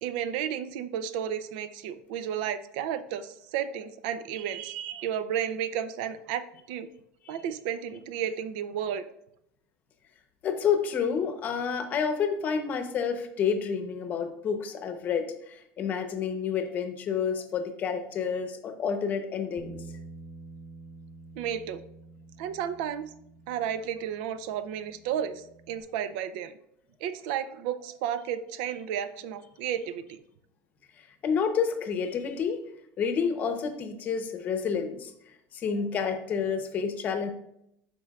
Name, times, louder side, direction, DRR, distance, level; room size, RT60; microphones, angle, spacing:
voice 1, 0.0-6.9 7.3-9.0 21.4-21.8 22.4-23.1 23.5-26.5 27.0-30.2, right 9 dB, 70° right, 13 dB, 0.6 m, -32 dB
voice 2, 10.4-19.8 31.2-32.6 33.0-35.1 35.5-37.3, left 6 dB, 30° left, 6 dB, 0.8 m, -29 dB
Bass guitar, 19.6-25.8, right 3 dB, 35° right, 1.1 m, -48 dB
12.0 x 4.4 x 2.4 m, 0.78 s
cardioid pair, 165°, 5 cm